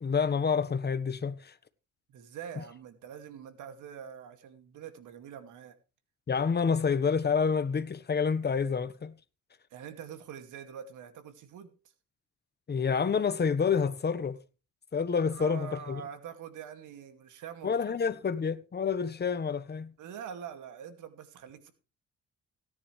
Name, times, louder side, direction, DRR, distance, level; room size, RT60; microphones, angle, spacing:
voice 1, 0.0-1.5 6.3-9.1 12.7-14.4 14.9-16.0 17.6-19.9, left 6 dB, 35° left, 1.3 m, -28 dB
voice 2, 2.1-5.8 9.7-11.7 15.3-18.0 18.3-18.4 20.0-21.7, right 8 dB, 85° right, 2.3 m, -44 dB
17.5 x 9.8 x 3.3 m
cardioid pair, 90°, 30 cm